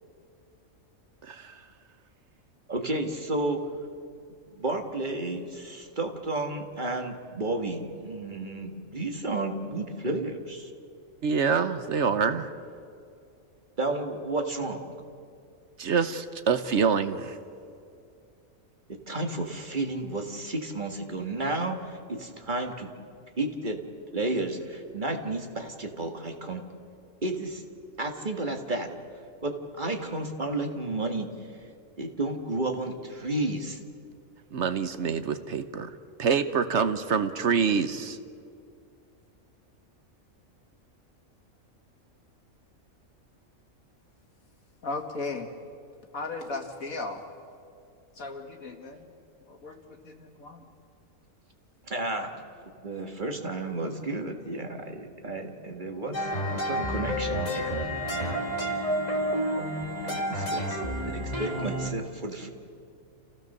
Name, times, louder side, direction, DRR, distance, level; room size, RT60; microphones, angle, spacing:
voice 1, 1.2-1.6 11.2-12.5 15.8-17.4 34.5-35.9 36.2-38.2, right 6 dB, 60° right, 10 dB, 1.1 m, -26 dB
voice 2, 2.7-3.6 4.6-10.7 13.8-14.8 18.9-22.9 23.4-23.8 24.1-26.6 27.2-27.6 28.0-28.9 29.4-31.3 32.0-33.8 51.9-52.3 52.8-58.7 60.0-60.8 61.1-62.5, right 2 dB, 35° right, 3 dB, 1.8 m, -32 dB
voice 3, 44.8-45.5 46.1-47.2 48.2-49.1 49.5-50.6, left 3 dB, 85° left, 4 dB, 2.3 m, -36 dB
sound 1, 56.1-61.9, equal, 30° left, 2.2 m, -30 dB
29.0 x 16.0 x 6.6 m, 2.4 s
omnidirectional pair, 1.4 m